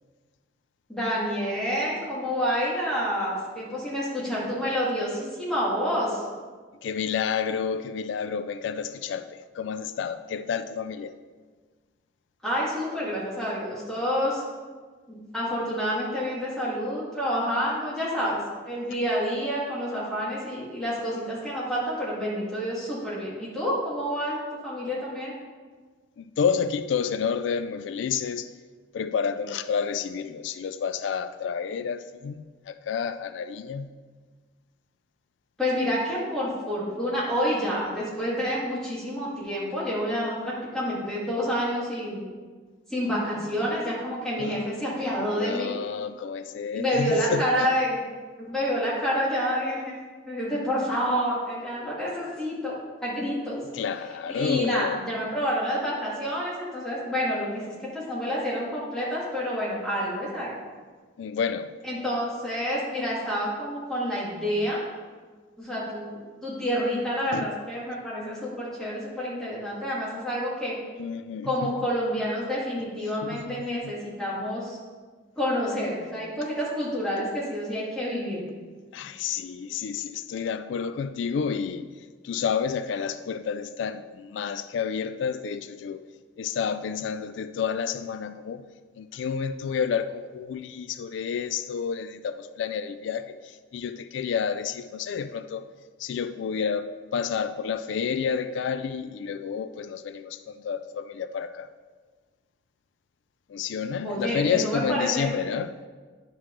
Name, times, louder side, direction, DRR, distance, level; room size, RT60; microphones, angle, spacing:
voice 1, 0.9-6.2 12.4-14.4 15.1-24.4 24.6-25.3 35.6-42.2 42.9-45.7 46.7-48.0 48.4-50.0 50.3-53.6 54.3-57.7 57.9-60.5 61.8-64.8 65.6-70.8 71.4-74.8 75.4-78.4 104.0-105.3, equal, 5° left, 2.0 m, -28 dB
voice 2, 6.8-11.1 26.2-28.5 28.9-33.9 44.4-44.6 45.3-47.7 53.7-55.0 61.2-61.7 67.3-67.6 71.0-71.7 73.2-73.9 78.9-81.9 82.2-86.1 86.4-88.6 89.0-95.6 96.0-101.7 103.5-105.7, left 6 dB, 90° left, 0.3 m, -30 dB
9.6 x 5.9 x 3.2 m
head